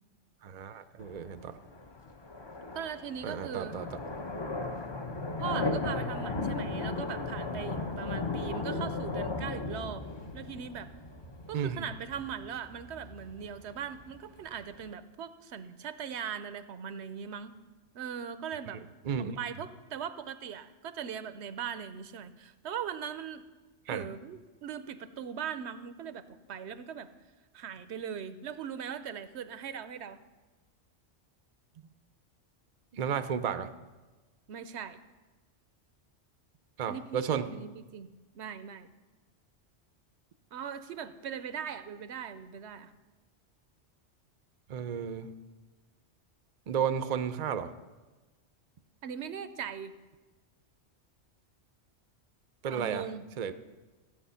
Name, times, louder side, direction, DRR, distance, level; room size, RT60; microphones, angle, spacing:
voice 1, 0.4-1.6 3.2-3.9 11.5-11.9 19.0-19.4 23.9-24.1 32.9-33.7 36.8-37.5 44.7-45.3 46.7-47.7 52.6-53.1 53.4-53.5, right 7 dB, 45° right, 11 dB, 0.6 m, -33 dB
sound 1, 1.0-14.9, left 3 dB, 25° left, 0.7 m, -36 dB
voice 2, 2.7-3.8 5.4-10.1 10.3-10.9 11.5-17.6 17.9-18.8 19.2-23.4 23.9-27.1 27.5-30.2 34.5-35.0 36.9-38.9 40.5-42.9 49.0-49.9 52.7-53.3, right 8 dB, 75° right, 12 dB, 0.9 m, -40 dB
15.0 x 8.6 x 5.6 m, 1.2 s
omnidirectional pair, 1.2 m